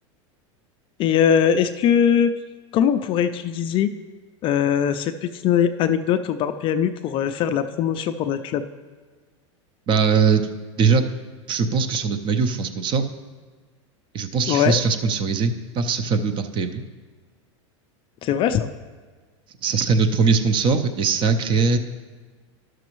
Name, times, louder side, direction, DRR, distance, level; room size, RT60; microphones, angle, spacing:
voice 1, 1.0-2.3 2.7-3.9 4.4-8.6 14.5-14.7 18.2-18.7, left 8 dB, 35° left, 9 dB, 0.3 m, -21 dB
voice 2, 9.9-10.5 10.8-11.0 11.5-13.1 14.1-16.8 19.6-21.8, right 5 dB, 30° right, 9 dB, 0.6 m, -21 dB
12.0 x 6.1 x 3.0 m, 1.5 s
supercardioid pair, 125°, 16 cm